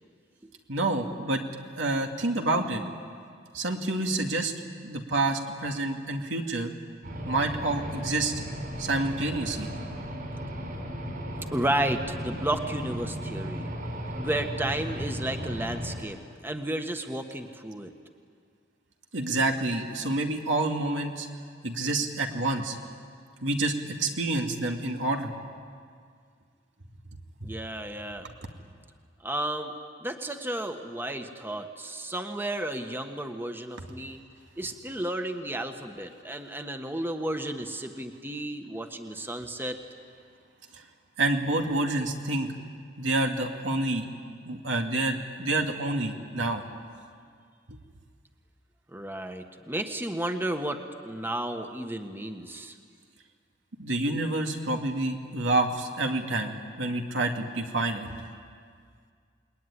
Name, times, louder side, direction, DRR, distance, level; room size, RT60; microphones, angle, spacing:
voice 1, 0.7-1.4 1.8-2.8 3.5-4.5 4.8-6.7 7.2-8.4 8.8-9.7 19.1-21.3 21.6-22.8 23.4-23.7 24.0-25.3 40.7-40.8 41.2-42.5 43.0-44.0 44.4-46.6 47.7-47.8 53.8-58.1, right 2 dB, 85° right, 3 dB, 2.5 m, -28 dB
sound 1, 7.0-16.0, equal, 55° right, 5.9 m, -36 dB
voice 2, 11.5-13.7 14.1-16.2 16.4-17.9 27.4-28.3 29.2-29.7 30.0-34.2 34.6-39.8 48.9-52.7, right 1 dB, 10° right, 6 dB, 1.3 m, -32 dB
28.0 x 21.0 x 9.9 m, 2.1 s
head